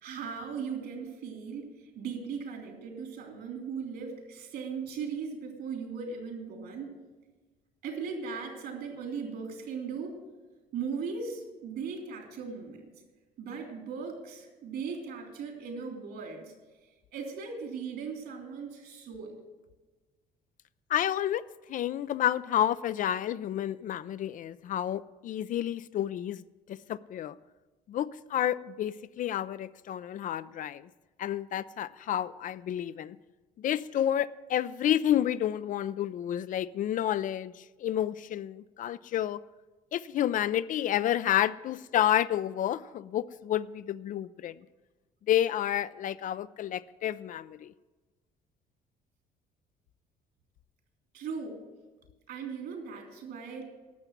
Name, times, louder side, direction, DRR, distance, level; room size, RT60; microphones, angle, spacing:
voice 1, 0.0-6.9 7.8-10.2 10.7-12.9 13.4-16.5 17.1-19.4 51.1-51.6 52.3-53.6, right 5 dB, 70° right, 3.1 m, -38 dB
voice 2, 20.9-21.4 21.7-26.4 26.7-27.4 27.9-30.9 31.2-33.2 33.6-39.4 39.9-44.6 45.3-47.7, left 11 dB, 50° left, 0.4 m, -30 dB
11.5 x 6.9 x 9.1 m
cardioid pair, 110°, 17 cm